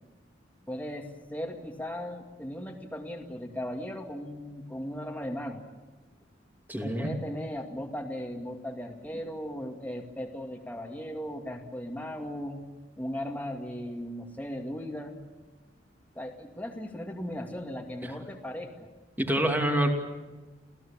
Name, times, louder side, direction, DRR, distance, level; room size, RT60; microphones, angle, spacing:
voice 1, 0.7-5.6 6.8-12.6 13.0-15.2 16.2-18.9, equal, 10° left, 2 dB, 2.2 m, -37 dB
voice 2, 6.7-7.2 19.2-19.9, right 1 dB, 10° right, 3 dB, 2.6 m, -26 dB
28.5 x 17.0 x 8.7 m, 1.2 s
head